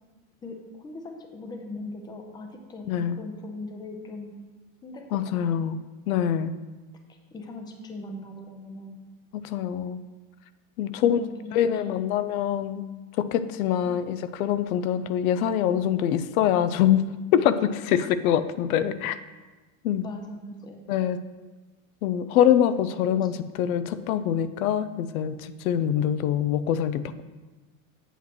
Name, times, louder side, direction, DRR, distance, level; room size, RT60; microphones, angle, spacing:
voice 1, 0.4-4.4 4.8-5.6 7.1-9.0 11.0-12.0 13.8-14.0 20.0-20.8 23.1-23.3, left 2 dB, 10° left, 4 dB, 0.5 m, -40 dB
voice 2, 2.9-3.2 5.1-5.8 6.1-6.5 9.3-10.0 10.8-11.2 11.5-12.9 13.2-17.0 17.3-19.2 19.8-20.1 20.9-21.2 22.0-27.1, left 10 dB, 85° left, 13 dB, 0.6 m, -24 dB
8.2 x 7.4 x 3.0 m, 1.2 s
supercardioid pair, 140°, 41 cm